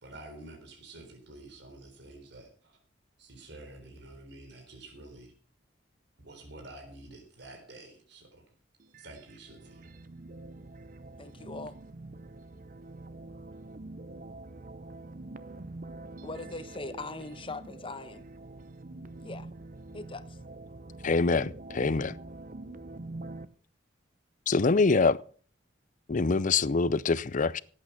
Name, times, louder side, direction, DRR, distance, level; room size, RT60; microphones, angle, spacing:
voice 1, 0.0-2.8 3.2-5.3 6.2-8.4 9.0-9.9, right 2 dB, 65° right, 4.0 m, -49 dB
sound 1, 8.8-23.4, right 2 dB, 45° right, 0.8 m, -45 dB
voice 2, 11.2-11.8 16.2-18.3 19.2-19.5 19.9-20.4, left 3 dB, 30° left, 1.1 m, -40 dB
voice 3, 21.0-22.1 24.5-25.2 26.1-27.6, left 4 dB, 45° left, 0.6 m, -25 dB
17.0 x 8.8 x 5.8 m
head